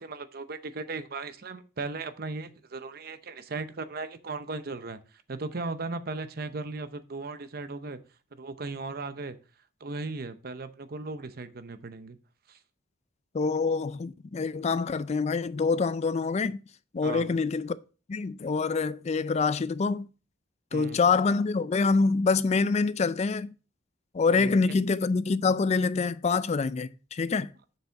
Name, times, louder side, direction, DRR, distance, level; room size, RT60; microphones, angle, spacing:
voice 1, 0.0-8.0 8.3-9.4 9.8-12.2 12.5-12.6 17.0-17.3 20.7-21.0 24.3-24.6, right 3 dB, 50° right, 0.7 m, -37 dB
voice 2, 13.3-16.6 16.9-17.8 18.1-20.1 20.7-23.5 24.1-27.5, left 4 dB, 35° left, 0.4 m, -26 dB
7.1 x 6.6 x 3.3 m
head